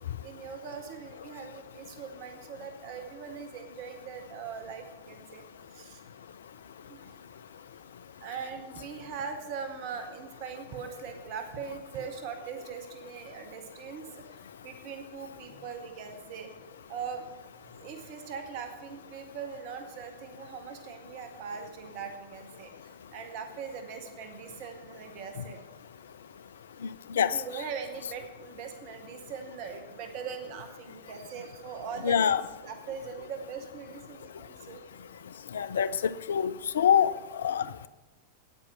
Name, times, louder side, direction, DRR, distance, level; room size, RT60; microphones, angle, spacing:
voice 1, 0.2-6.0 6.9-7.2 8.2-16.5 16.9-17.3 17.6-25.6 27.3-34.9 37.1-37.2, right 6 dB, 45° right, 1.0 m, -41 dB
voice 2, 32.0-32.4 35.5-37.9, left 8 dB, 65° left, 0.4 m, -25 dB
9.0 x 8.9 x 5.5 m
figure-of-eight pair, 90°, 0 cm